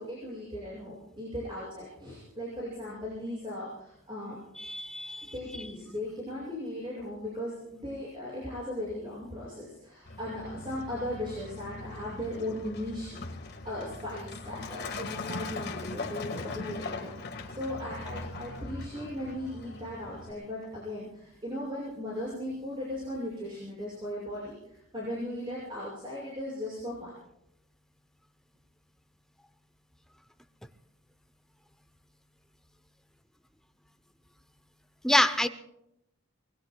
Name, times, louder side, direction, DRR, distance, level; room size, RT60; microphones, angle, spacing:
voice 1, 0.0-4.4 5.3-27.1, left 1 dB, 25° right, -6 dB, 6.3 m, -37 dB
voice 2, 4.6-5.3 35.0-35.5, left 1 dB, ahead, 9 dB, 0.6 m, -26 dB
Truck, 10.1-20.3, left 3 dB, 50° left, 1.6 m, -40 dB
26.5 x 21.5 x 2.3 m, 0.83 s
head